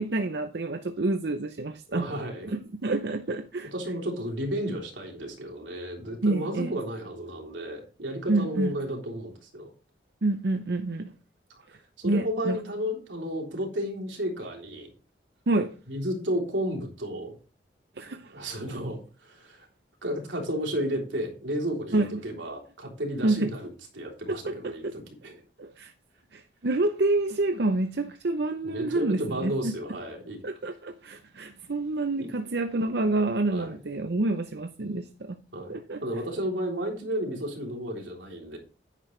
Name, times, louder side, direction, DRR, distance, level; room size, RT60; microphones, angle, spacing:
voice 1, 0.0-2.1 2.5-3.7 6.2-6.8 8.3-8.7 10.2-11.1 12.0-12.6 15.5-15.7 18.0-18.3 21.9-22.2 23.2-23.5 24.3-24.9 25.6-25.9 26.3-29.7 30.4-35.4 35.7-36.0, right 2 dB, 65° right, 0.7 m, -28 dB
voice 2, 1.9-2.5 3.7-9.7 11.7-14.9 15.9-17.3 18.3-19.7 20.0-25.4 28.6-30.4 32.2-32.3 33.5-33.8 35.5-38.6, equal, 90° right, 3.4 m, -33 dB
10.0 x 9.0 x 3.2 m
head